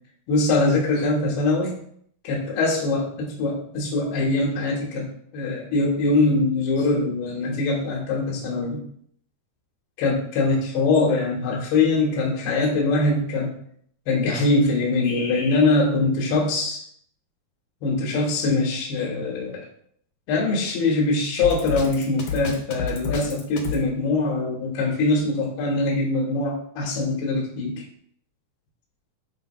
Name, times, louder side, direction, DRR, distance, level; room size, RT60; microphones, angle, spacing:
voice 1, 0.3-1.7 2.2-5.1 5.3-8.8 10.0-13.5 14.1-16.8 17.8-19.6 20.3-27.8, left 3 dB, 85° left, -2 dB, 3.4 m, -23 dB
Drum kit, 21.4-23.8, left 3 dB, 60° left, 1.6 m, -29 dB
11.5 x 4.6 x 2.3 m, 0.65 s
omnidirectional pair, 4.5 m